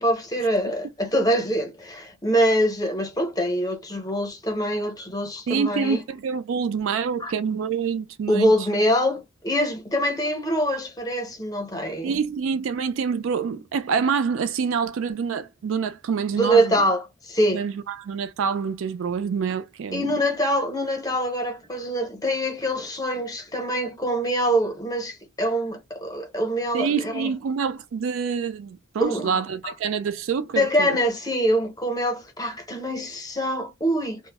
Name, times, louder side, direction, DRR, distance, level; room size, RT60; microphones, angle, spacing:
voice 1, 0.0-6.0 7.2-7.3 8.3-12.2 16.4-17.6 19.9-27.3 29.0-29.7 30.6-34.2, equal, 20° left, 0.6 m, -24 dB
voice 2, 5.5-8.5 12.0-16.8 17.5-20.2 26.7-31.0, right 6 dB, 65° right, 0.3 m, -26 dB
2.4 x 2.0 x 3.4 m
head